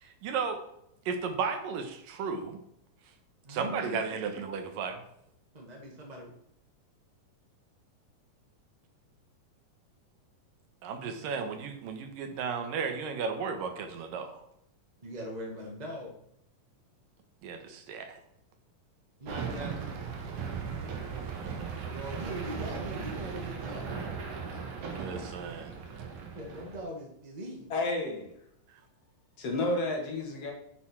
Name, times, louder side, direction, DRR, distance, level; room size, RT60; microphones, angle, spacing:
voice 1, 0.0-0.6 1.1-2.6 3.5-5.0 10.8-14.4 17.4-18.2 24.9-25.8 28.7-28.8, right 5 dB, 85° right, 6 dB, 2.9 m, -34 dB
voice 2, 3.4-4.1 5.5-6.3 11.0-11.1 15.0-16.1 19.2-20.1 21.9-23.9 26.3-27.7, equal, 25° right, 0 dB, 0.9 m, -41 dB
sound 1, 19.3-26.8, right 5 dB, 65° right, 2.7 m, -37 dB
voice 3, 27.7-28.3 29.4-30.5, left 2 dB, 50° left, 1 dB, 2.6 m, -31 dB
8.8 x 6.8 x 6.0 m, 0.75 s
omnidirectional pair, 3.8 m